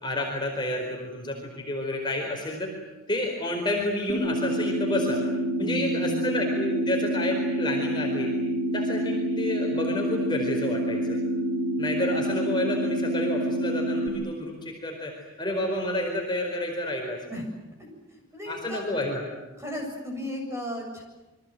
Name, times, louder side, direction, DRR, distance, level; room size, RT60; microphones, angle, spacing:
voice 1, 0.0-2.7 3.1-5.2 5.6-8.3 8.7-11.2 11.8-15.1 15.4-17.2 18.5-19.2, left 1 dB, 20° left, 0 dB, 4.6 m, -30 dB
sound 1, 4.1-14.1, right 1 dB, 60° left, 4.6 m, -27 dB
voice 2, 5.6-6.2 17.3-17.4 18.1-19.0 19.6-21.0, left 1 dB, 15° right, 1 dB, 7.5 m, -35 dB
29.0 x 24.5 x 7.9 m, 1.1 s
head